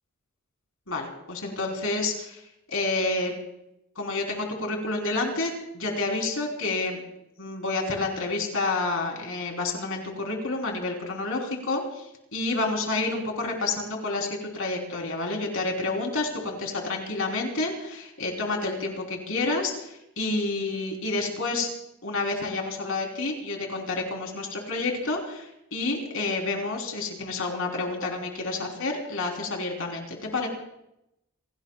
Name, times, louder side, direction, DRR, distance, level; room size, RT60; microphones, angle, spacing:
voice 1, 0.9-2.4 2.7-3.4 4.0-7.0 7.4-12.0 12.3-21.7 22.0-30.5, left 3 dB, 65° left, 1 dB, 3.9 m, -29 dB
28.0 x 18.0 x 2.4 m, 0.82 s
head